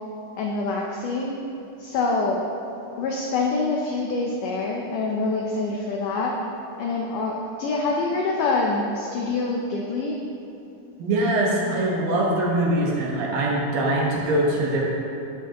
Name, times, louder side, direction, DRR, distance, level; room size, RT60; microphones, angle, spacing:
voice 1, 0.4-1.4 1.8-2.4 3.0-6.4 6.8-10.2, left 3 dB, 80° left, -1 dB, 1.8 m, -25 dB
voice 2, 11.0-14.8, right 1 dB, 65° right, -4 dB, 2.7 m, -22 dB
11.5 x 9.6 x 3.0 m, 3.0 s
omnidirectional pair, 4.6 m